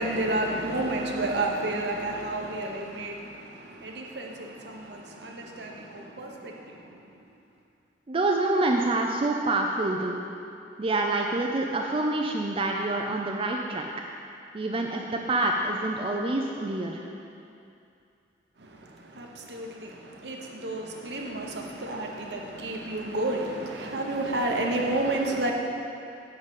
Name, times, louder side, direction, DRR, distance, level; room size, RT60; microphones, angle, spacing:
voice 1, 0.0-7.0 18.6-25.5, right 2 dB, 70° right, 1 dB, 1.0 m, -31 dB
voice 2, 8.1-10.2 10.8-13.9 14.5-17.1, right 2 dB, 30° right, 1 dB, 0.5 m, -27 dB
10.5 x 4.0 x 7.3 m, 2.6 s
head